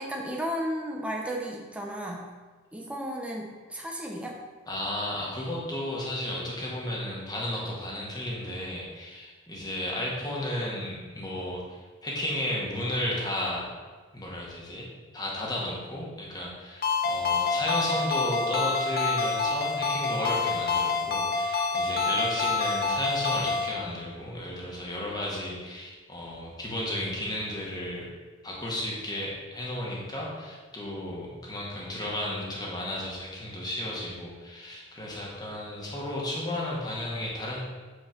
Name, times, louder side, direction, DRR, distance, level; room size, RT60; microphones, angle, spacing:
voice 1, 0.0-2.3 2.7-4.4, equal, 5° right, -1 dB, 1.1 m, -34 dB
voice 2, 4.7-13.7 14.1-14.9 15.1-28.1 28.4-37.6, left 1 dB, 20° left, -4 dB, 1.9 m, -33 dB
Ringtone, 16.8-23.7, left 4 dB, 50° left, 1.0 m, -27 dB
8.7 x 4.7 x 5.3 m, 1.4 s
head